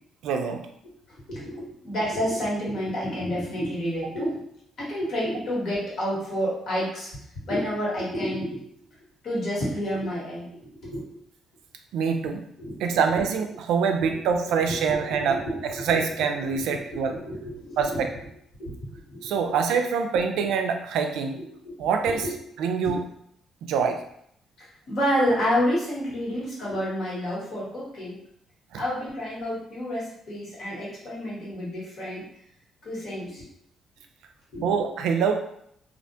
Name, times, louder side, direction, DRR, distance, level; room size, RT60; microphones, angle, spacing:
voice 1, 0.2-0.6 11.9-12.4 12.8-15.4 15.9-17.1 17.8-18.1 19.2-21.4 21.8-22.2 22.6-23.0 23.6-24.0 28.7-28.8 34.6-35.4, right 6 dB, 90° right, 4 dB, 0.3 m, -25 dB
voice 2, 1.1-4.5 4.8-7.1 7.4-8.7 9.2-11.2 12.6-12.7 14.0-14.2 14.7-15.8 16.8-18.1 18.6-19.5 21.3-21.7 22.1-22.4 22.8-23.0 24.6-28.2 28.8-32.2 32.8-33.5 34.5-34.7, equal, 65° left, -6 dB, 1.3 m, -29 dB
2.4 x 2.1 x 2.7 m, 0.71 s
cardioid pair, 90°, 0 cm